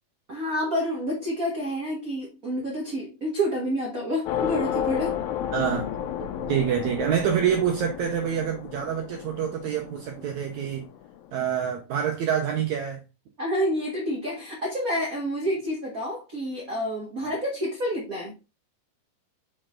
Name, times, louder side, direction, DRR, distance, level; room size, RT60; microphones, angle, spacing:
voice 1, 0.3-5.2 13.4-18.3, equal, 50° right, 1.0 m, -28 dB
sound 1, 4.3-11.1, left 10 dB, 90° left, 2.5 m, -32 dB
voice 2, 5.5-5.9 6.5-10.8 11.3-13.0 17.2-17.3, right 8 dB, 75° right, 1.8 m, -26 dB
6.0 x 4.4 x 3.7 m
omnidirectional pair, 4.2 m